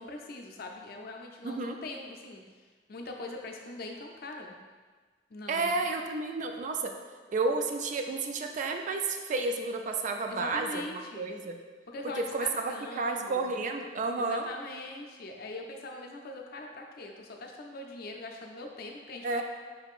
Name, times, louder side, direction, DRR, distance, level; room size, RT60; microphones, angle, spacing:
voice 1, 0.0-2.4 2.9-4.5 5.3-5.7 10.3-11.3 11.9-13.5 14.2-19.4, left 2 dB, 60° left, 2 dB, 0.5 m, -42 dB
voice 2, 1.4-1.8 5.5-6.9 7.3-10.8 11.1-11.6 12.2-14.5 19.2-19.4, right 3 dB, 45° right, 4 dB, 0.3 m, -31 dB
4.6 x 3.5 x 2.4 m, 1.4 s
head